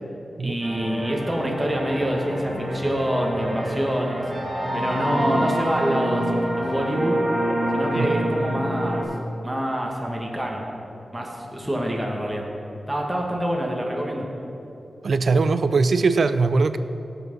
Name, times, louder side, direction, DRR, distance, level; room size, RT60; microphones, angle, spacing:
voice 1, 0.4-4.2 4.7-7.2 7.7-9.0 9.4-10.6 11.1-12.5 12.9-14.3, equal, 10° right, -1 dB, 1.6 m, -26 dB
sound 1, 0.6-9.0, right 1 dB, 35° right, 2.6 m, -26 dB
voice 2, 15.0-16.8, right 4 dB, 70° right, 12 dB, 0.5 m, -20 dB
16.5 x 6.0 x 5.4 m, 2.8 s
wide cardioid pair, 90°, 0 cm